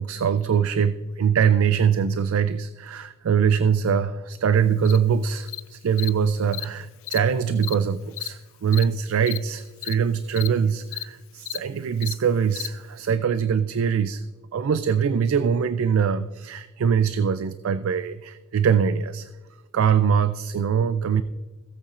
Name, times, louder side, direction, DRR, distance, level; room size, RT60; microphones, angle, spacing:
voice 1, 0.0-14.2 14.5-19.3 19.7-21.2, right 7 dB, 80° right, 12 dB, 0.4 m, -23 dB
Cricket, 4.8-5.0 5.5-5.6 6.0-6.1 6.5-6.6 7.0-7.2 7.6-7.7 8.1-8.3 8.7-8.8 9.2-9.4 9.8-9.9 10.3-10.5 10.9-11.0 11.4-11.6 12.0-12.1 12.5-12.7, left 15 dB, 70° left, 0.4 m, -32 dB
16.5 x 8.4 x 2.5 m, 1.3 s
head